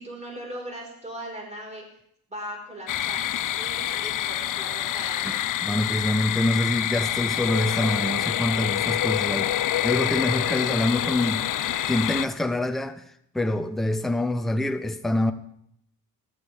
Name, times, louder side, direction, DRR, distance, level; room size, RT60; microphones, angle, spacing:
voice 1, 0.0-1.8 2.3-3.3 3.6-5.4, right 1 dB, 15° right, 4.4 m, -38 dB
sound 1, 2.9-12.3, left 12 dB, 50° left, 0.6 m, -27 dB
voice 2, 5.6-9.5 9.8-11.4 11.9-13.0 13.3-15.3, left 1 dB, ahead, 0.8 m, -25 dB
13.5 x 11.0 x 3.4 m
cardioid pair, 75°, 40 cm